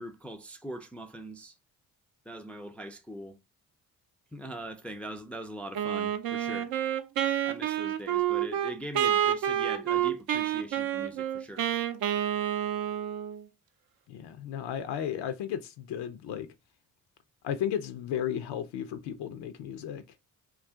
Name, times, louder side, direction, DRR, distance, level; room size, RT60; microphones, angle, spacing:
voice 1, 0.0-1.5 2.3-3.4 4.3-6.7 7.4-11.7, right 1 dB, 5° left, 0.4 m, -41 dB
Wind instrument woodwind instrument, 5.7-13.4, right 10 dB, 55° right, 0.5 m, -29 dB
voice 2, 14.1-16.5 17.4-20.0, left 9 dB, 70° left, 0.6 m, -34 dB
2.4 x 2.3 x 3.5 m
hypercardioid pair, 45°, 43 cm